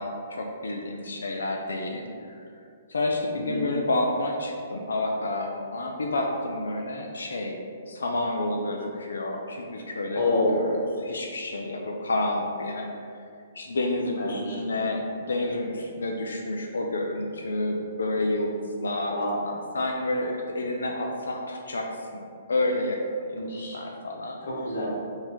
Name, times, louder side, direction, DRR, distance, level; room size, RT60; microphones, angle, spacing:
voice 1, 0.0-2.4 2.9-10.2 10.5-13.2 13.6-22.2 22.5-24.4, left 2 dB, 85° left, 1 dB, 0.4 m, -30 dB
voice 2, 10.1-10.6 14.2-14.6 19.1-19.3 23.3-23.8 24.4-24.9, left 2 dB, 70° left, -4 dB, 1.4 m, -27 dB
3.8 x 2.7 x 4.5 m, 2.4 s
hypercardioid pair, 135°, 0 cm